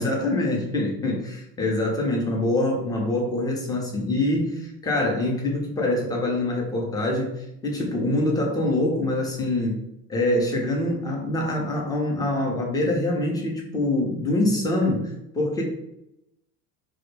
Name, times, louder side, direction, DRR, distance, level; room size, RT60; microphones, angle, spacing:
voice 1, 0.0-9.8 10.1-15.6, left 1 dB, 10° left, -1 dB, 0.4 m, -25 dB
2.2 x 2.0 x 3.1 m, 0.84 s
hypercardioid pair, 85°, 50 cm